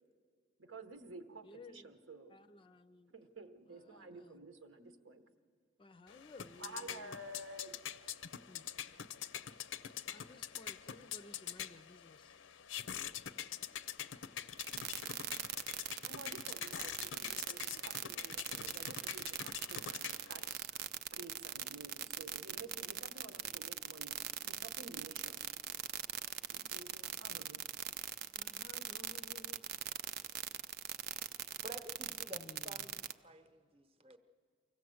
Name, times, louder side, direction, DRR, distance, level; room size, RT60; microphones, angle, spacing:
voice 1, 0.6-2.4 3.1-5.3 6.6-7.8 16.0-20.8 21.1-25.4 26.5-27.6, right 2 dB, 85° right, 8 dB, 1.1 m, -52 dB
voice 2, 1.4-1.9 2.3-3.2 3.7-4.4 5.8-7.2 8.4-8.7 10.1-12.4 12.8-13.0 28.3-29.7 32.3-33.0, left 2 dB, 25° left, 12 dB, 0.4 m, -57 dB
sound 1, 6.1-20.5, left 9 dB, 75° left, 0.5 m, -45 dB
sound 2, 14.6-33.1, right 11 dB, 50° right, 0.5 m, -41 dB
voice 3, 31.6-34.2, equal, 30° right, 8 dB, 0.9 m, -51 dB
24.5 x 16.0 x 7.7 m, 2.1 s
head